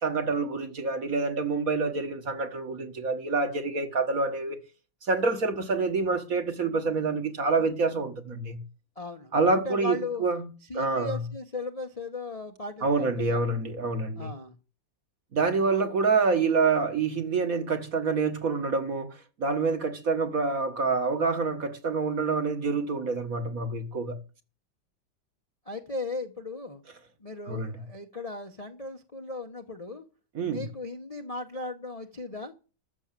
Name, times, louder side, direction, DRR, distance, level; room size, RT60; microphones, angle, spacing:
voice 1, 0.0-4.6 5.1-8.6 9.3-10.5 10.7-11.2 12.8-14.3 15.3-24.2 27.5-27.7 30.4-30.7, right 4 dB, 50° right, 1.9 m, -27 dB
voice 2, 9.0-10.2 10.7-13.5 14.2-14.6 25.7-26.8 27.2-30.1 30.5-32.5, left 3 dB, 25° left, 0.8 m, -37 dB
13.5 x 6.5 x 7.4 m
omnidirectional pair, 2.1 m